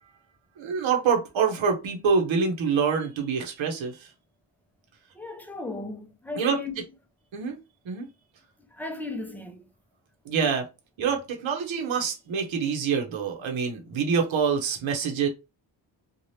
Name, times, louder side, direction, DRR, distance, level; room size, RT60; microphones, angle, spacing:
voice 1, 0.6-4.1 6.4-6.6 7.3-7.6 7.9-8.1 10.3-10.6 11.0-15.3, right 6 dB, 75° right, 0.9 m, -26 dB
voice 2, 5.1-6.8 8.7-9.6, left 3 dB, 5° left, 0.5 m, -36 dB
2.7 x 2.4 x 3.1 m
cardioid pair, 105°, 46 cm